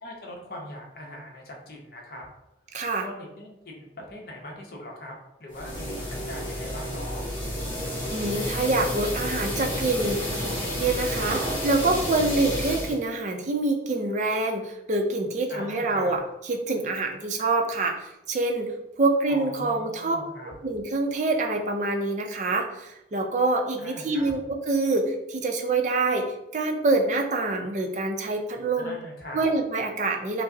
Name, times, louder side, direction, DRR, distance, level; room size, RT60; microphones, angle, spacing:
voice 1, 0.0-2.3 3.0-5.1 5.4-7.3 15.5-16.1 19.3-20.5 23.8-24.3 28.7-29.5, left 1 dB, 55° left, 0 dB, 0.7 m, -41 dB
voice 2, 2.7-3.1 8.1-10.5 10.8-16.2 16.5-18.7 19.0-20.2 20.5-26.3 26.5-29.0 29.3-30.4, right 2 dB, 40° right, 3 dB, 0.4 m, -26 dB
sound 1, 5.5-12.9, equal, 25° left, 1.3 m, -30 dB
4.7 x 2.0 x 2.6 m, 0.88 s
head